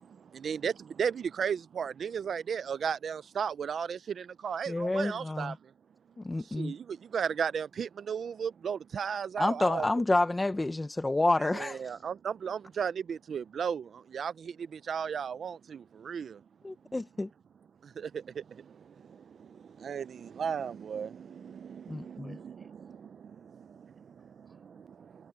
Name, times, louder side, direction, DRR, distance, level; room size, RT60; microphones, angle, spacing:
voice 1, 1.4-4.0 4.4-5.5 6.6-6.7 7.1-9.9 11.5-13.8 14.1-14.3 14.9-15.5 16.1-16.2 19.8-20.0 20.4-21.1, right 7 dB, 75° right, 0.4 m, -33 dB
voice 2, 4.7-5.6 6.2-6.7 9.4-11.9 16.6-17.3 21.9-22.4, left 2 dB, 20° left, 0.8 m, -29 dB
voice 3, 22.0-23.1 23.7-23.8 24.2-25.2, right 1 dB, 15° right, 7.2 m, -63 dB
cardioid pair, 85°, 0 cm